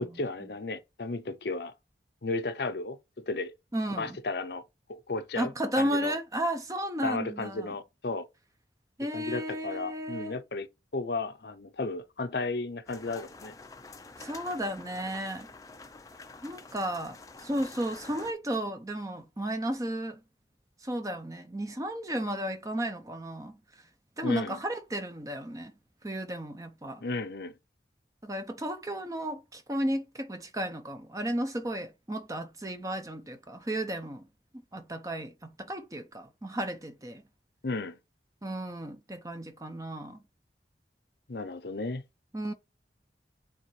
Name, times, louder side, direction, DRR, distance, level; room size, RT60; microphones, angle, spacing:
voice 1, 0.0-1.7 2.2-3.5 3.9-4.6 4.9-6.2 7.0-8.3 9.0-10.7 10.9-13.5 24.2-24.6 27.0-27.6 37.6-38.0 41.3-42.0, left 3 dB, 65° left, 0.7 m, -34 dB
voice 2, 3.7-4.2 5.4-7.7 9.0-10.3 14.2-15.5 16.4-17.2 17.4-20.2 20.8-23.6 24.2-25.7 26.0-27.0 28.2-34.2 34.7-37.2 38.4-40.2 42.3-42.5, right 1 dB, 20° right, 0.7 m, -33 dB
sound 1, 12.9-18.3, left 3 dB, 20° left, 0.6 m, -48 dB
9.2 x 3.6 x 3.2 m
head